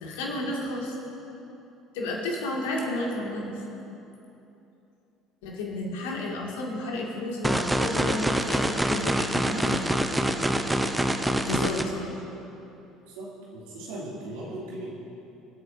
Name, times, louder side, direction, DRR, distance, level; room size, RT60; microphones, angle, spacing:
voice 1, 0.0-1.0 1.9-3.5 5.4-10.2 11.4-12.1, left 2 dB, 70° left, -2 dB, 2.2 m, -32 dB
sound 1, 7.4-11.8, right 1 dB, 10° right, 0.8 m, -26 dB
voice 2, 13.2-14.9, right 1 dB, 70° right, -6 dB, 2.8 m, -38 dB
25.5 x 8.8 x 2.7 m, 2.9 s
figure-of-eight pair, 60°, 0 cm